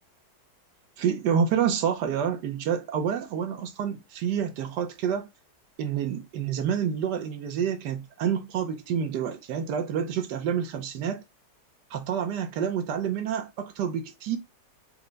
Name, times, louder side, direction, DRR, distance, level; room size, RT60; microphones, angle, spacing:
voice 1, 1.0-5.3 5.8-11.2 11.9-14.4, right 8 dB, 70° right, 1.2 m, -28 dB
4.4 x 2.1 x 3.7 m
omnidirectional pair, 1.9 m